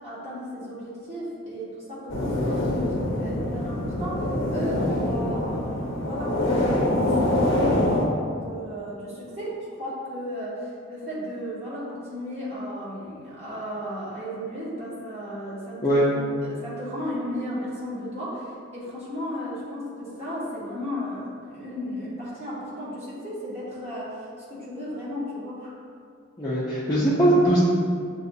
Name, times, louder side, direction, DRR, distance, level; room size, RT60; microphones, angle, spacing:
voice 1, 0.0-16.1 16.4-25.7, equal, 30° right, -9 dB, 1.0 m, -35 dB
sound 1, 2.1-8.1, left 1 dB, 75° left, 0.6 m, -25 dB
voice 2, 26.4-27.6, right 1 dB, 20° left, -9 dB, 0.4 m, -21 dB
6.6 x 2.3 x 2.6 m, 2.4 s
head